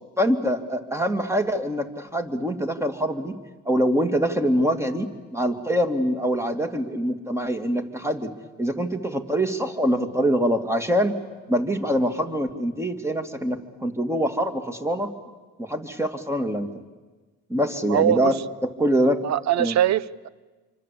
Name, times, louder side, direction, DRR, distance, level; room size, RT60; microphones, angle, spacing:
voice 1, 0.2-3.3 3.7-8.3 8.6-11.1 11.5-15.1 15.6-16.7 17.5-18.4 18.6-19.3 19.6-19.7, equal, 10° right, 6 dB, 2.5 m, -24 dB
voice 2, 17.8-18.3 19.2-20.3, right 10 dB, 60° right, 19 dB, 0.9 m, -22 dB
26.5 x 24.5 x 8.6 m, 1.3 s
cardioid pair, 90°, 30 cm